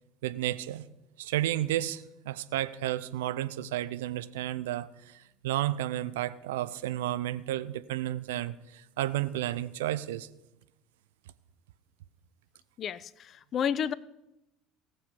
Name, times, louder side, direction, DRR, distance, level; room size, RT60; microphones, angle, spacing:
voice 1, 0.2-0.9 1.2-10.3, right 14 dB, 65° right, 14 dB, 0.6 m, -32 dB
voice 2, 12.8-13.9, left 8 dB, 40° left, 21 dB, 0.4 m, -31 dB
18.0 x 6.9 x 5.3 m, 0.93 s
figure-of-eight pair, 65°, 0 cm